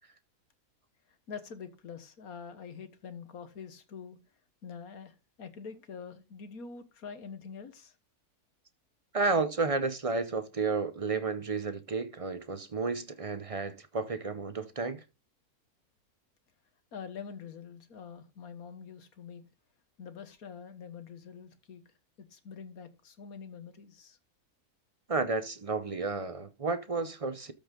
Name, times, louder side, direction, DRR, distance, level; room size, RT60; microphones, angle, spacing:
voice 1, 1.3-4.2 4.6-7.9 16.9-19.4 20.0-21.8 22.2-24.2, left 6 dB, 70° left, 1.7 m, -45 dB
voice 2, 9.1-15.0 25.1-27.5, right 4 dB, 35° right, 0.5 m, -32 dB
13.0 x 5.5 x 3.7 m
omnidirectional pair, 1.6 m